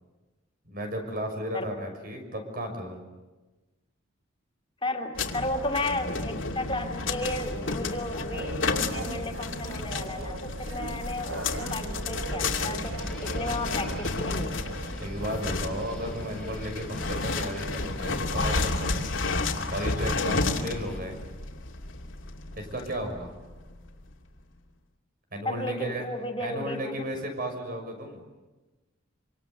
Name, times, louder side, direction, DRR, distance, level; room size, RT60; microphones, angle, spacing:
voice 1, 0.6-3.0 15.0-19.2 19.7-21.2 22.6-23.3 25.3-26.1 26.4-28.2, equal, 50° right, 5 dB, 6.1 m, -34 dB
voice 2, 4.8-8.6 8.9-12.9 13.2-14.7 25.4-27.1, left 2 dB, 25° left, 3 dB, 3.0 m, -33 dB
sound 1, 5.1-23.9, left 3 dB, 80° left, 2.6 m, -32 dB
sound 2, 7.1-15.8, right 3 dB, 85° right, 1.1 m, -40 dB
sound 3, 13.0-21.0, left 1 dB, ahead, 4.8 m, -48 dB
26.5 x 25.5 x 8.1 m, 1.2 s
head